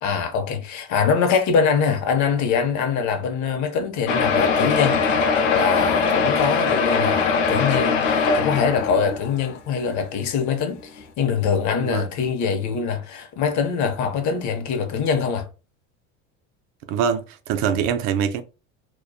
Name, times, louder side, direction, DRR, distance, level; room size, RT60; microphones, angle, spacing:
voice 1, 0.0-5.0 5.5-15.5, left 6 dB, 50° left, 0.7 m, -23 dB
sound 1, 4.1-9.5 10.2-10.3 10.5-10.6 11.0-11.1, left 5 dB, 85° left, 0.7 m, -21 dB
voice 2, 16.9-18.4, right 7 dB, 60° right, 0.5 m, -23 dB
2.4 x 2.2 x 2.3 m
supercardioid pair, 100°, 37 cm